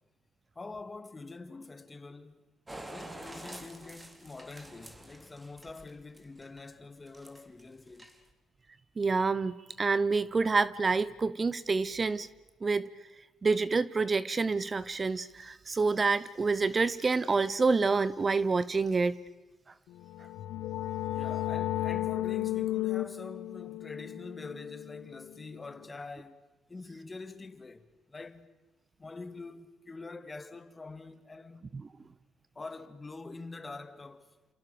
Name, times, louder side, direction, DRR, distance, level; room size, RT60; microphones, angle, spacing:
voice 1, 0.6-2.4 2.9-8.1 21.1-26.4 26.7-28.5 29.0-31.7 32.5-34.3, left 3 dB, 25° left, 2.3 m, -45 dB
sound 1, 2.7-6.6 7.1-7.6 7.9-8.3, right 1 dB, 15° right, 3.5 m, -47 dB
voice 2, 9.0-12.3 12.6-12.9 13.4-19.2, right 4 dB, 30° right, 0.8 m, -27 dB
sound 2, 20.0-25.6, left 14 dB, 85° left, 0.9 m, -34 dB
29.0 x 28.0 x 6.9 m
cardioid pair, 90°, 0 cm